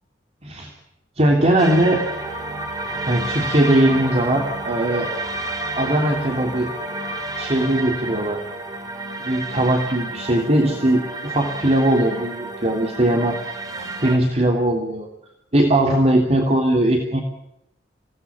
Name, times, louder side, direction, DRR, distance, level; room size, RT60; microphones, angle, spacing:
voice 1, 0.4-0.7 1.2-2.0 3.0-5.1 5.8-6.7 7.4-8.4 9.2-13.4 13.8-15.1 15.5-17.3, right 1 dB, 35° right, 2 dB, 3.2 m, -19 dB
sound 1, 1.6-14.2, right 2 dB, 20° right, 3.8 m, -30 dB
28.0 x 18.0 x 7.2 m, 0.82 s
head